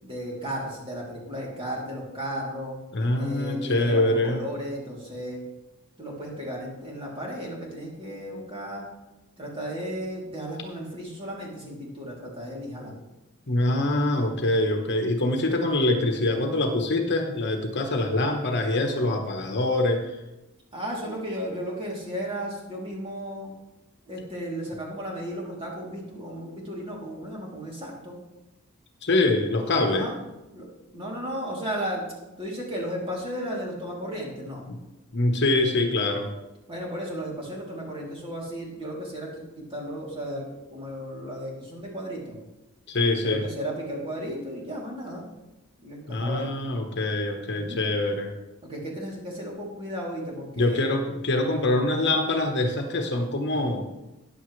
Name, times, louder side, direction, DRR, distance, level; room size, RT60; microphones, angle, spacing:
voice 1, 0.0-2.8 3.2-5.4 6.0-8.9 9.4-12.9 20.7-23.5 24.1-28.2 29.8-30.1 30.5-32.1 32.4-34.6 36.7-40.5 40.7-42.4 43.2-45.3 45.8-46.5 47.5-47.8 48.6-50.9, equal, 25° right, -3 dB, 3.1 m, -34 dB
voice 2, 2.9-4.4 13.5-20.1 29.0-30.1 35.1-36.3 42.9-43.4 46.1-48.3 50.6-53.9, left 2 dB, 55° left, 4 dB, 1.2 m, -24 dB
14.0 x 10.0 x 3.3 m, 1.0 s
head